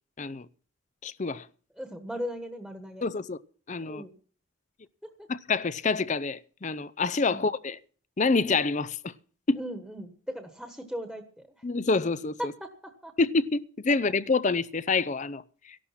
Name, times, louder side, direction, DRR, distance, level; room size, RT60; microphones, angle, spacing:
voice 1, 1.0-1.5 3.0-3.4 3.7-4.0 5.3-7.8 8.2-9.1 9.5-9.6 11.6-12.5 13.2-15.8, left 3 dB, 35° left, 0.6 m, -27 dB
voice 2, 1.8-3.1 3.8-4.1 5.0-5.3 7.3-7.5 9.5-11.6 12.4-13.1, equal, ahead, 1.4 m, -38 dB
14.5 x 11.5 x 5.8 m
head